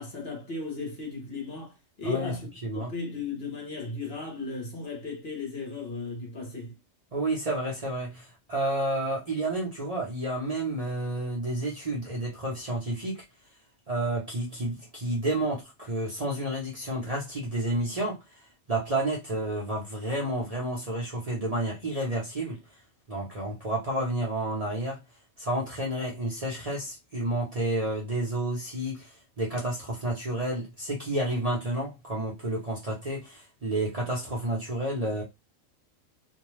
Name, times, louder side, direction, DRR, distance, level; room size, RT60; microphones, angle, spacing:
voice 1, 0.0-6.7, left 3 dB, 55° left, 1.0 m, -36 dB
voice 2, 2.0-2.3 2.6-2.9 7.1-13.2 13.9-18.2 18.7-22.6 23.1-25.0 25.4-35.2, right 1 dB, 35° right, 0.8 m, -30 dB
2.6 x 2.2 x 3.1 m
omnidirectional pair, 1.4 m